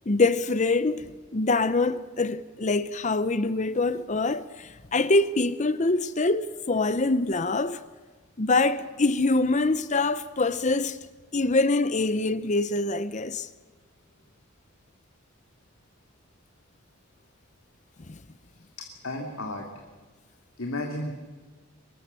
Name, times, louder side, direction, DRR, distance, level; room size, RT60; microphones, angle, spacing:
voice 1, 0.1-7.8 8.4-11.0 11.3-13.5 18.1-18.2, left 3 dB, 35° left, 0.7 m, -24 dB
voice 2, 18.8-19.8 20.6-21.1, left 1 dB, 75° left, 2.7 m, -33 dB
24.0 x 22.0 x 6.9 m
head